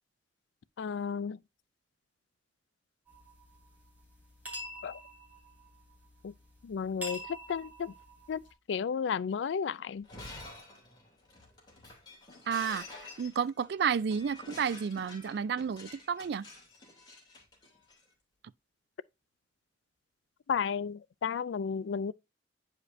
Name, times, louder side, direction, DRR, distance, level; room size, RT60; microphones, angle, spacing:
voice 1, 0.8-1.4 4.8-5.0 6.2-6.3 6.6-7.2 7.5-7.9 8.3-8.4 8.7-10.0 20.5-22.1, left 6 dB, 80° left, 0.4 m, -33 dB
sound 1, 3.1-8.5, equal, 10° right, 3.5 m, -47 dB
Shatter, 10.0-18.0, left 2 dB, 25° left, 2.9 m, -49 dB
voice 2, 12.5-16.5, right 7 dB, 65° right, 0.3 m, -31 dB
9.7 x 5.1 x 2.6 m
head